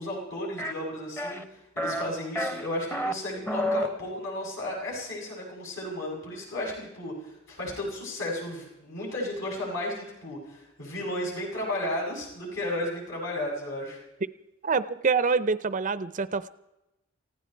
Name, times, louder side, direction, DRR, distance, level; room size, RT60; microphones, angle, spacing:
voice 1, 0.0-14.0, left 1 dB, 65° left, -1 dB, 7.8 m, -34 dB
sound 1, 0.6-0.7 1.2-1.4 1.8-2.1 2.4-3.1 3.5-3.9, equal, 10° left, 1.0 m, -29 dB
voice 2, 14.6-16.5, right 5 dB, 40° right, 15 dB, 0.6 m, -26 dB
19.5 x 16.0 x 4.6 m, 0.93 s
head